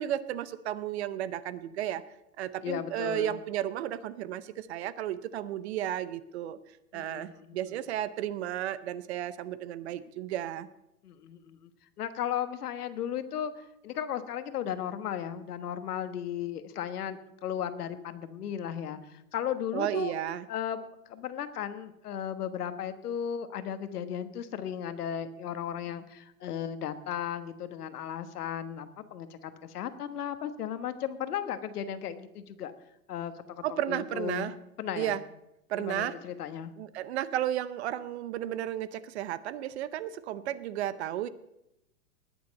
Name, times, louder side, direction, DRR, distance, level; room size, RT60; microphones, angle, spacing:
voice 1, 0.0-2.0 2.4-6.6 6.9-10.7 19.7-20.5 33.6-34.5 35.0-35.2 35.7-36.2 36.8-41.3, right 12 dB, 45° right, 16 dB, 0.7 m, -33 dB
voice 2, 2.6-3.4 6.9-7.5 11.0-11.7 12.0-20.1 20.5-20.8 21.1-32.7 33.1-35.2 35.8-36.7, left 9 dB, 80° left, 11 dB, 1.4 m, -35 dB
19.5 x 7.0 x 5.4 m, 0.85 s
hypercardioid pair, 155°, 45 cm